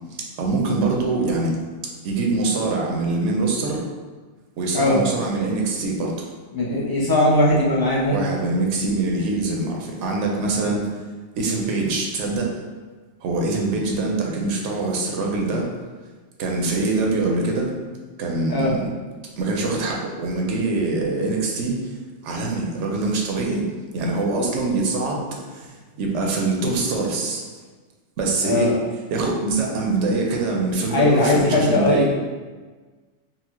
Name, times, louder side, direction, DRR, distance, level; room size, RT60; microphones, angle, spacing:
voice 1, 0.1-1.6 2.0-3.8 4.6-6.3 8.1-10.8 11.4-12.6 13.2-15.7 16.4-17.7 18.2-18.9 19.4-21.9 22.2-23.6 23.9-25.7 26.0-27.4 28.2-28.8 29.1-32.1, right 3 dB, 90° right, 0 dB, 1.0 m, -24 dB
voice 2, 6.5-8.2 18.5-18.7 28.4-28.8 30.9-32.1, left 1 dB, 35° left, -6 dB, 0.3 m, -19 dB
4.0 x 2.1 x 2.9 m, 1.4 s
omnidirectional pair, 1.2 m